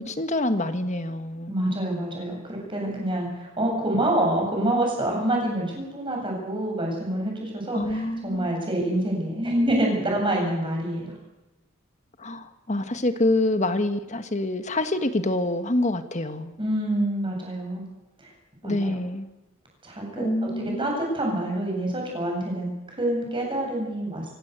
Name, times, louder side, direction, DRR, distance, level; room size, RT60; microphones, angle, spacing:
voice 1, 0.0-1.5 7.7-8.5 12.2-16.6 18.6-19.3 20.2-21.0, left 1 dB, 35° left, 9 dB, 1.6 m, -26 dB
voice 2, 1.5-11.1 16.6-17.9 18.6-18.9 19.8-24.3, right 1 dB, 25° right, 0 dB, 7.9 m, -27 dB
25.0 x 16.5 x 8.2 m, 1.0 s
head